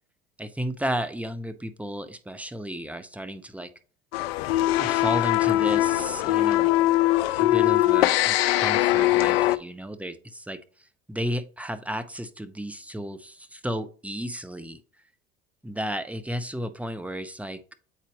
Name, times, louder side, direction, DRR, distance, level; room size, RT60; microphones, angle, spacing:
voice 1, 0.4-3.7 4.8-6.7 7.4-10.6 11.1-14.8 15.6-17.7, equal, 5° right, 11 dB, 0.8 m, -33 dB
sound 1, 4.1-9.6, left 16 dB, 80° left, 0.5 m, -21 dB
8.2 x 4.3 x 3.0 m, 0.41 s
hypercardioid pair, 70°, 30 cm